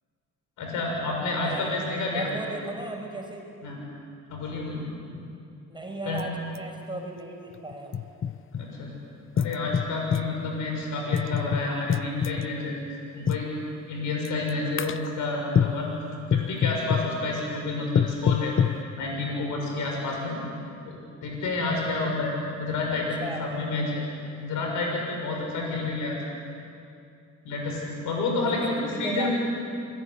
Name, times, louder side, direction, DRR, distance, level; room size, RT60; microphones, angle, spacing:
voice 1, 0.6-2.3 3.6-3.8 4.3-5.2 6.0-6.2 8.5-8.9 9.4-12.8 13.1-13.5 13.9-15.9 16.3-18.6 19.0-20.4 20.9-24.0 24.4-26.2 27.4-29.3, left 3 dB, 80° left, 0 dB, 6.9 m, -29 dB
voice 2, 1.3-1.8 2.1-3.5 5.7-7.9 23.2-23.4 28.4-28.6 28.9-29.3, right 2 dB, 15° right, 1 dB, 5.8 m, -36 dB
sound 1, 6.2-6.3 6.6-6.7 7.5-8.6 9.4-10.3 11.1-12.5 13.3-13.5 14.3-14.5 14.8-15.1 15.6-15.9 16.3-17.1 18.0-18.8, left 8 dB, 40° left, 0.9 m, -25 dB
27.0 x 21.5 x 9.9 m, 2.5 s
cardioid pair, 90°, 30 cm